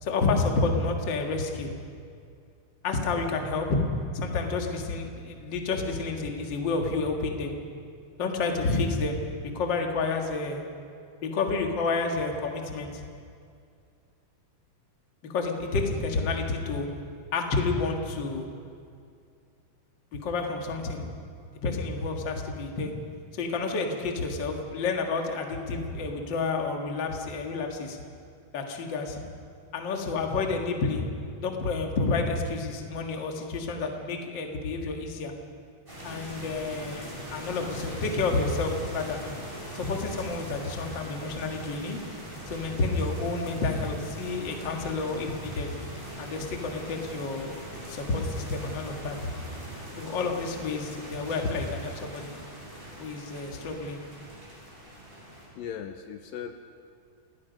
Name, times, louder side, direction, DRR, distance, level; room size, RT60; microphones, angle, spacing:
voice 1, 0.0-1.7 2.8-3.8 4.1-7.5 8.2-9.2 9.5-10.6 11.2-13.0 15.3-16.9 17.3-18.5 20.1-21.1 21.6-22.9 23.3-28.0 28.5-29.2 29.7-31.1 31.4-35.3 36.0-39.2 39.7-42.0 42.5-45.7 46.2-47.5 47.9-49.3 50.0-52.3 53.0-54.1, left 3 dB, 40° left, 2 dB, 1.9 m, -29 dB
sound 1, 35.9-55.5, equal, 15° right, 6.7 m, -41 dB
voice 2, 55.6-56.6, left 8 dB, 75° left, 6 dB, 2.4 m, -38 dB
28.0 x 19.5 x 5.3 m, 2.4 s
omnidirectional pair, 4.4 m